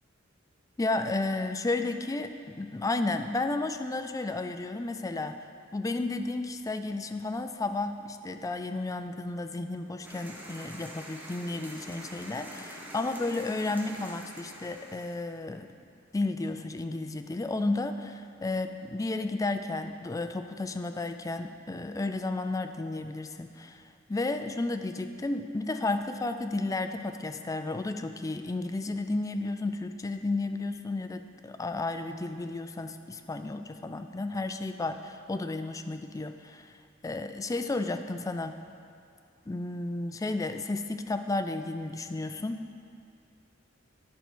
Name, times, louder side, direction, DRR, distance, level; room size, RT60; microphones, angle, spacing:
voice 1, 0.8-5.4 5.7-15.7 16.1-23.8 24.1-36.7 37.0-38.6 39.5-42.6, left 2 dB, 15° left, 8 dB, 0.3 m, -32 dB
sound 1, 10.0-15.1, right 1 dB, 10° right, 0.9 m, -45 dB
10.5 x 4.7 x 6.1 m, 2.5 s
head